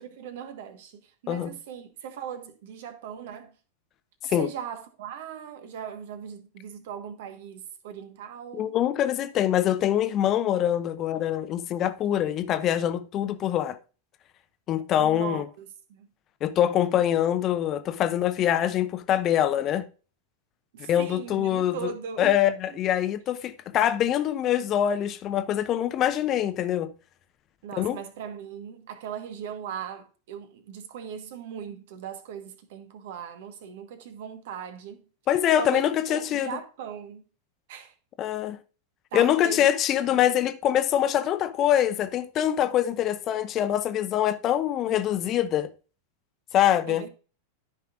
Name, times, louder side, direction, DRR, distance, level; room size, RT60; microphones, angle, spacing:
voice 1, 0.0-3.5 4.2-8.8 15.0-16.1 20.7-22.3 22.7-22.8 27.6-35.0 35.6-37.2 37.7-37.9 39.1-39.7 40.0-40.3 46.9-47.1, right 8 dB, 55° right, 1.4 m, -39 dB
voice 2, 8.5-13.8 14.7-15.5 16.4-19.8 20.9-21.9 22.2-26.9 27.8-28.0 35.3-36.5 38.2-38.6 39.1-45.7 46.5-47.1, left 11 dB, 35° left, 0.8 m, -24 dB
13.5 x 5.6 x 2.5 m
figure-of-eight pair, 90°, 0 cm